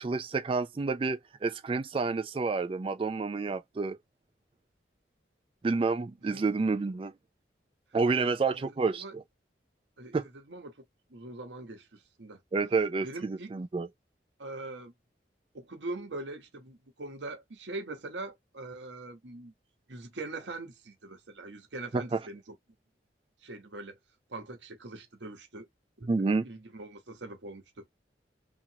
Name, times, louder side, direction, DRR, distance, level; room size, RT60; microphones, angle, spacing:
voice 1, 0.0-4.0 5.6-7.1 7.9-9.2 10.1-10.3 12.5-13.9 21.9-22.2 26.1-26.5, right 4 dB, 30° right, 0.3 m, -29 dB
voice 2, 8.1-9.1 10.0-10.7 11.1-12.4 13.0-13.5 14.4-14.9 15.5-19.5 19.9-22.5 23.4-24.0 24.3-25.7 26.0-27.8, right 2 dB, 85° right, 1.0 m, -42 dB
2.9 x 2.5 x 2.7 m
head